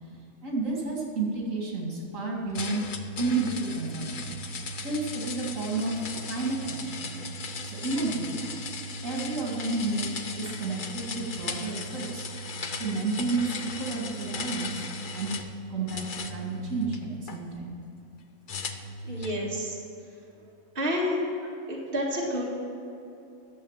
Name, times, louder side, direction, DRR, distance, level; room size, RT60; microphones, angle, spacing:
voice 1, 0.4-2.8 3.2-4.4 4.8-7.1 7.6-8.4 9.0-12.3 12.8-14.8 15.1-15.3 15.7-16.0 16.3-17.7, right 3 dB, 75° right, -2 dB, 2.6 m, -31 dB
sound 1, 2.5-15.5 15.9-17.4 18.5-19.4, left 2 dB, 45° left, 0.8 m, -37 dB
voice 2, 19.0-19.8 20.7-21.2 21.7-22.4, equal, 45° right, -4 dB, 2.1 m, -29 dB
11.5 x 7.4 x 7.4 m, 2.8 s
omnidirectional pair, 1.4 m